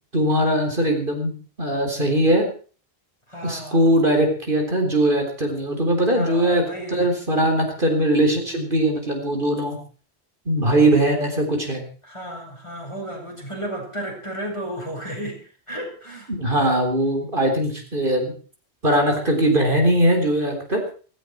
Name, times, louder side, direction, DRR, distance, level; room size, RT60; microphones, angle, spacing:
voice 1, 0.1-2.5 3.4-6.6 6.9-9.8 10.5-11.8 16.3-18.3 18.8-20.8, right 1 dB, 55° right, 2 dB, 4.2 m, -20 dB
voice 2, 3.3-3.8 6.1-7.1 12.0-15.4 15.7-16.3, right 1 dB, 30° left, 0 dB, 5.7 m, -33 dB
17.0 x 16.5 x 4.7 m, 0.41 s
omnidirectional pair, 1.1 m